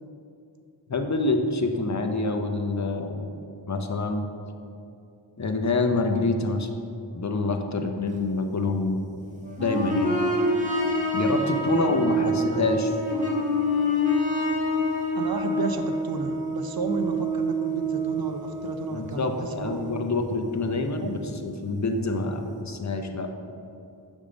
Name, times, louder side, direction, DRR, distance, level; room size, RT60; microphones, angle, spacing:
voice 1, 0.9-3.3 3.7-4.3 5.4-6.7 7.1-9.0 9.6-10.2 11.1-12.9 18.9-23.3, left 3 dB, 40° left, 5 dB, 0.6 m, -26 dB
sound 1, 9.4-20.7 21.9-22.0, equal, 15° right, 1.1 m, -27 dB
voice 2, 11.3-12.7 15.1-19.9 21.0-21.1, right 4 dB, 55° right, 6 dB, 0.6 m, -32 dB
6.5 x 3.6 x 5.0 m, 2.6 s
wide cardioid pair, 55°, 44 cm